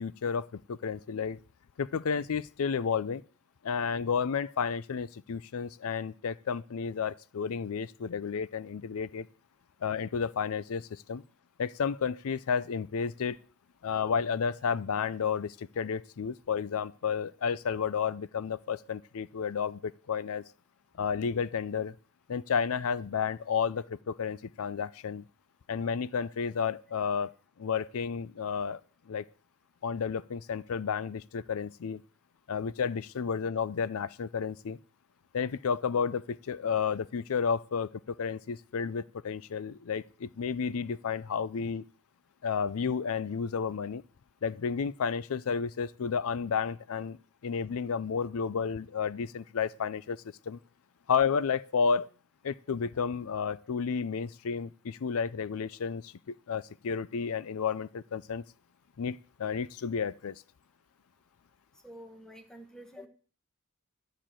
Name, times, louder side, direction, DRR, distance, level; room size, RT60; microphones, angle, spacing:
voice 1, 0.0-1.4 1.8-3.2 3.6-9.3 9.8-11.2 11.6-13.4 13.8-20.4 21.0-21.9 22.3-25.2 25.7-27.3 27.6-28.8 29.1-29.2 29.8-32.0 32.5-34.8 35.3-41.8 42.4-44.0 44.4-50.6 51.1-52.1 52.4-58.4 59.0-60.4, left 6 dB, 70° left, 0.5 m, -32 dB
voice 2, 61.8-63.1, equal, 5° left, 1.3 m, -48 dB
12.5 x 6.6 x 7.5 m
head